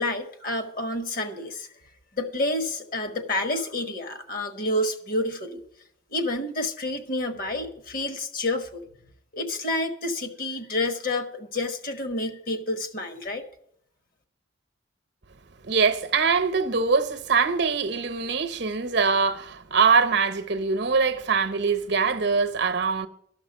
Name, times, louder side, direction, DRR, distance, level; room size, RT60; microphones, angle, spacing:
voice 1, 0.0-1.7 2.1-5.6 6.1-8.9 9.3-13.4, left 2 dB, 45° left, 1.3 m, -29 dB
voice 2, 15.6-23.1, right 5 dB, 55° right, 0.8 m, -23 dB
12.5 x 5.9 x 9.4 m
head